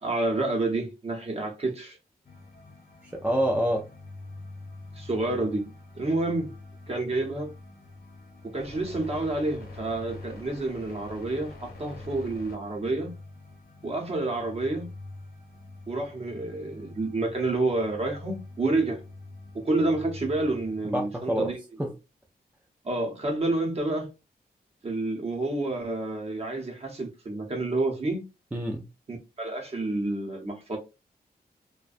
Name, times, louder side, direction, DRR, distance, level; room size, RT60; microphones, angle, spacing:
voice 1, 0.0-2.0 5.0-5.7 6.0-6.6 6.9-7.5 8.4-13.1 13.8-14.9 15.9-19.0 19.6-21.6 22.8-24.1 24.8-28.3 29.1-30.8, right 2 dB, 40° right, 0.8 m, -29 dB
sound 1, 2.2-21.0, left 2 dB, 70° left, 0.8 m, -45 dB
voice 2, 3.0-3.9 20.8-21.5 21.8-21.9 28.5-28.9, right 1 dB, 10° right, 0.3 m, -27 dB
2.5 x 2.2 x 2.4 m
wide cardioid pair, 140°, 17 cm